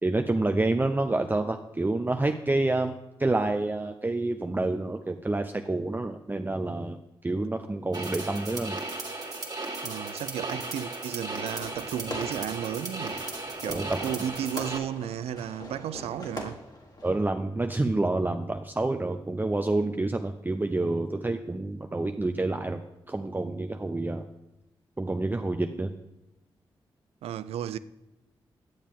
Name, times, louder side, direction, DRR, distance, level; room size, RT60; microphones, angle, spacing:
voice 1, 0.0-7.0 7.2-8.8 13.7-14.0 17.0-22.8 23.1-24.3 25.0-25.9, right 2 dB, 20° right, 0.6 m, -28 dB
sound 1, 7.9-14.8, right 2 dB, 40° right, 1.9 m, -36 dB
voice 2, 9.8-13.2 13.6-16.6 27.2-27.8, right 10 dB, 80° right, 0.4 m, -34 dB
Fireworks, 11.2-17.2, left 1 dB, 40° left, 2.0 m, -42 dB
10.5 x 7.3 x 3.6 m
supercardioid pair, 40°, 10 cm